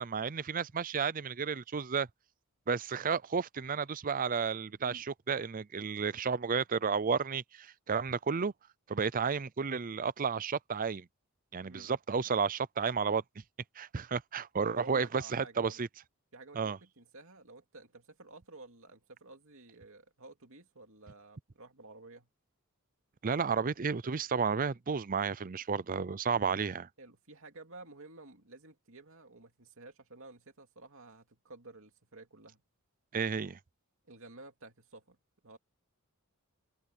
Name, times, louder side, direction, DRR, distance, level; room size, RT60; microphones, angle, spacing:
voice 1, 0.0-2.1 2.7-8.5 8.9-11.1 11.5-13.2 13.8-15.9 16.5-16.8 23.2-26.9 33.1-33.6, right 5 dB, 40° right, 0.5 m, -32 dB
voice 2, 11.6-11.9 14.6-15.8 16.3-22.3 27.0-32.6 34.1-35.2 35.4-35.6, right 2 dB, 60° right, 2.8 m, -52 dB
head